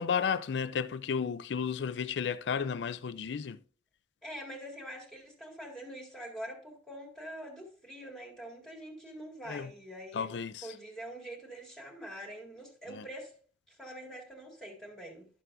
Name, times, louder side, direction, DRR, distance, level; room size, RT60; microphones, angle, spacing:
voice 1, 0.0-3.6 9.5-9.7 10.1-10.7 12.9-13.0, left 6 dB, 80° left, 0.4 m, -33 dB
voice 2, 4.2-10.3 10.6-13.4 13.7-15.3, equal, 5° left, 2.0 m, -45 dB
12.0 x 6.7 x 2.4 m
head